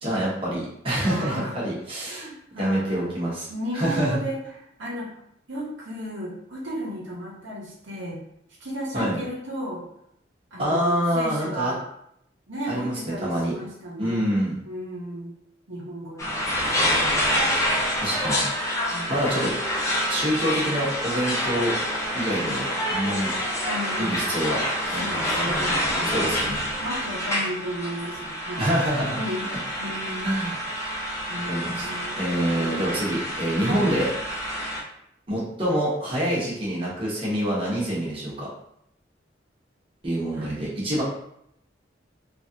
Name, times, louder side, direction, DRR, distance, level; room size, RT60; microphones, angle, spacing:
voice 1, 0.0-2.3 2.6-3.5 3.7-4.2 8.9-9.2 10.6-11.7 12.7-13.6 14.0-14.6 18.0-18.4 19.1-19.5 20.1-21.7 22.1-23.3 24.0-24.6 24.9-25.2 26.1-26.6 28.6-29.2 29.5-29.6 30.2-30.6 31.5-31.9 32.1-34.1 35.3-38.5 40.0-41.0, right 1 dB, 30° right, -7 dB, 1.0 m, -26 dB
voice 2, 1.0-1.7 2.1-3.1 3.5-4.4 4.8-5.1 5.5-8.2 8.6-9.8 10.5-11.9 12.5-14.2 14.6-15.3 15.7-16.5 16.8-17.1 18.8-19.4 22.4-22.6 23.6-24.2 24.9-28.7 29.2-29.5 29.8-30.4 31.3-32.2 32.4-32.8 33.6-33.9 40.3-40.5, equal, 85° right, -4 dB, 0.9 m, -34 dB
sound 1, 16.2-34.8, equal, 15° left, 0.6 m, -27 dB
3.0 x 2.5 x 2.7 m, 0.75 s
head